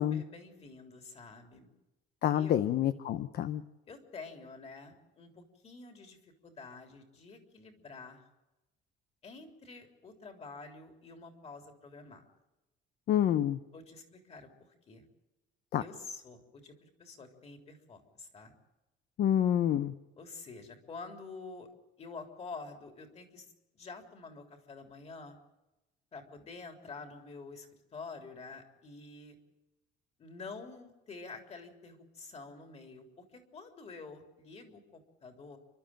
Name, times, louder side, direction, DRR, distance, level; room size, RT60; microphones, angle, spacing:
voice 1, 0.0-1.7 2.3-2.7 3.9-8.2 9.2-12.2 13.7-14.5 14.9-15.1 15.8-18.5 20.2-21.7 22.0-23.5 23.7-25.4 26.1-29.4 30.2-35.6, left 4 dB, 30° left, 5 dB, 3.6 m, -48 dB
voice 2, 2.2-3.6 13.1-13.6 15.7-15.8 19.2-19.9, left 10 dB, 50° left, 12 dB, 0.8 m, -28 dB
29.5 x 12.5 x 8.9 m, 1.0 s
cardioid pair, 170°, 21 cm